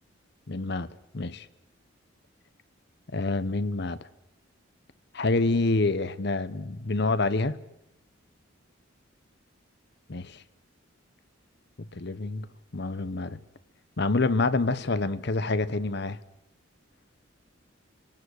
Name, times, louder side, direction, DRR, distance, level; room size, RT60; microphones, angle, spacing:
voice 1, 0.5-0.9 1.1-1.5 3.1-4.0 5.1-7.6 10.1-10.4 11.9-13.4 14.0-16.2, left 3 dB, 55° left, 0.9 m, -27 dB
27.0 x 18.5 x 6.5 m
head